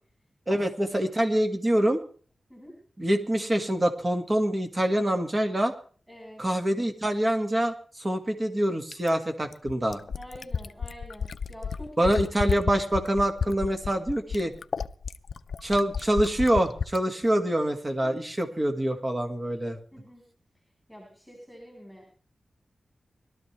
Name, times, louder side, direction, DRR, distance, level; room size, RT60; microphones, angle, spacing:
voice 1, 0.5-2.0 3.0-5.7 6.4-10.0 12.0-14.5 15.6-19.8, right 1 dB, 25° right, 6 dB, 1.9 m, -25 dB
voice 2, 6.1-6.4 10.2-12.2 18.0-18.3 19.9-20.3 20.9-22.1, equal, ahead, 0 dB, 4.4 m, -46 dB
Fill (with liquid), 8.9-17.0 18.3-18.4, left 6 dB, 75° left, 0.5 m, -32 dB
21.0 x 12.5 x 3.3 m, 0.42 s
wide cardioid pair, 125°, 0 cm